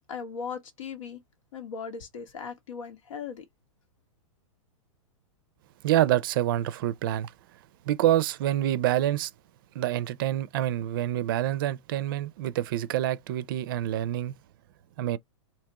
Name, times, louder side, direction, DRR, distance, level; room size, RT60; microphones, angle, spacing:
voice 1, 0.1-1.2 1.5-3.4, left 6 dB, 90° left, 1.4 m, -38 dB
voice 2, 5.8-7.3 7.9-9.3 9.7-14.3 15.0-15.2, right 13 dB, 45° right, 0.4 m, -26 dB
3.5 x 2.8 x 2.9 m
supercardioid pair, 160°, 16 cm